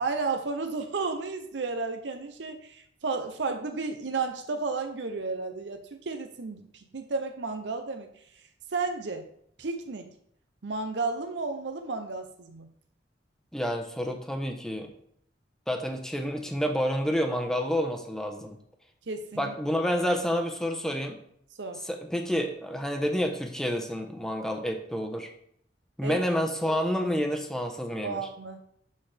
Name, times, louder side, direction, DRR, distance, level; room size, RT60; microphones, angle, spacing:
voice 1, 0.0-8.4 8.7-9.3 9.6-10.1 10.6-12.7 19.1-19.5 21.6-21.8 26.0-26.2 28.0-28.6, right 4 dB, 75° right, 6 dB, 0.7 m, -33 dB
voice 2, 13.5-14.9 15.7-18.6 19.4-21.2 21.9-25.3 26.0-28.2, equal, 5° left, 4 dB, 0.9 m, -29 dB
12.0 x 4.3 x 3.4 m, 0.68 s
head